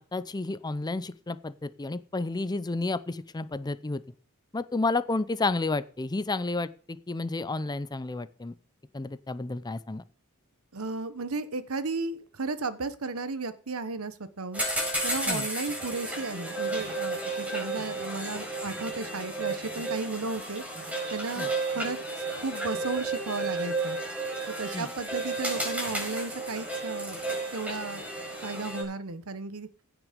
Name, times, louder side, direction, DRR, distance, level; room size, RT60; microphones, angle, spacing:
voice 1, 0.0-4.0 4.5-8.5 8.9-10.0 15.3-15.5 21.4-21.5 24.7-24.9, left 3 dB, 20° left, 14 dB, 0.5 m, -31 dB
voice 2, 10.7-14.6 15.0-20.6 21.1-22.0 22.4-24.0 24.5-29.7, right 3 dB, 70° right, 13 dB, 1.0 m, -34 dB
sound 1, 14.5-28.8, right 2 dB, 5° right, 4.6 m, -33 dB
16.0 x 6.1 x 5.1 m, 0.42 s
head